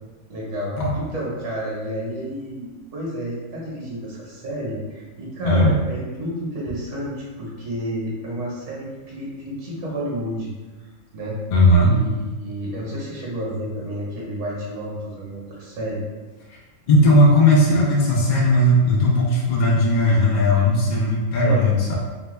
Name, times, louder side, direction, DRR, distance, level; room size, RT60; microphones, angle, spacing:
voice 1, 0.3-10.5 11.1-11.4 11.8-16.0 21.4-21.6, equal, 65° right, -5 dB, 1.2 m, -30 dB
voice 2, 5.4-5.8 11.5-12.0 16.5-16.6 16.9-22.0, left 1 dB, 70° left, -3 dB, 0.4 m, -17 dB
2.8 x 2.2 x 3.1 m, 1.2 s
omnidirectional pair, 1.4 m